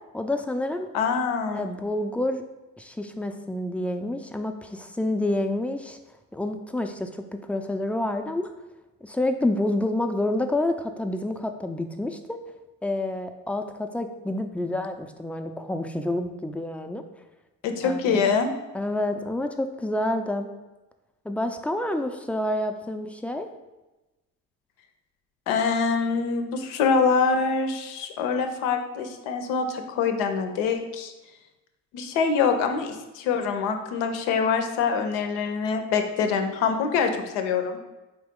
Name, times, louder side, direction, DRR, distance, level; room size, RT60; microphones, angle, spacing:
voice 1, 0.1-0.9 1.5-2.4 2.8-6.0 6.3-8.5 9.0-12.4 12.8-17.0 17.8-18.4 18.7-20.5 21.2-23.5, left 1 dB, 5° left, 6 dB, 0.4 m, -28 dB
voice 2, 0.9-1.7 17.6-18.5 25.5-31.1 31.9-37.8, left 5 dB, 80° left, 6 dB, 0.6 m, -25 dB
4.3 x 2.9 x 3.6 m, 1.1 s
hypercardioid pair, 55°, 40 cm